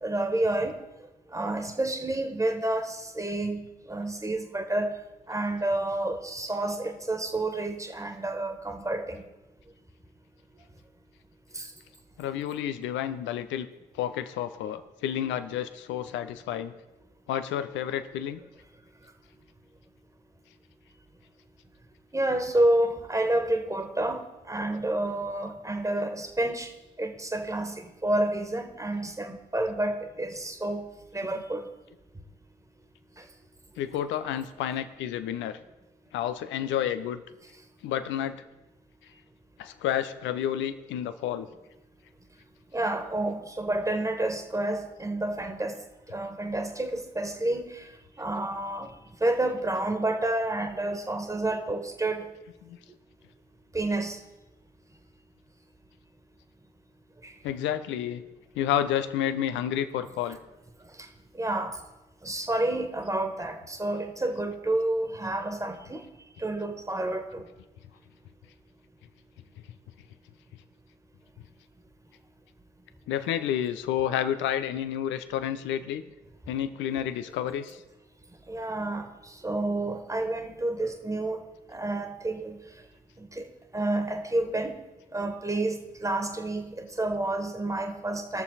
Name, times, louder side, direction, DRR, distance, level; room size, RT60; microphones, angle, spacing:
voice 1, 0.0-0.8 1.3-3.6 3.9-4.9 5.3-9.2 11.5-11.7 22.1-26.7 27.0-30.8 31.1-31.6 42.7-45.8 46.1-47.8 48.2-48.9 49.2-52.3 53.7-54.2 57.2-57.3 61.3-61.8 62.2-66.0 66.4-67.5 78.5-79.1 79.4-81.4 81.7-82.6 83.2-83.5 83.7-84.8 85.1-88.4, right 2 dB, 15° right, 6 dB, 1.8 m, -29 dB
voice 2, 12.2-13.7 14.0-16.7 17.3-18.4 33.8-35.6 36.1-37.2 37.8-38.4 39.6-41.5 52.6-52.8 57.4-58.2 58.5-60.4 73.1-76.0 76.5-77.8, left 10 dB, 70° left, 11 dB, 0.8 m, -30 dB
20.5 x 6.9 x 4.2 m, 1.0 s
hypercardioid pair, 45°, 20 cm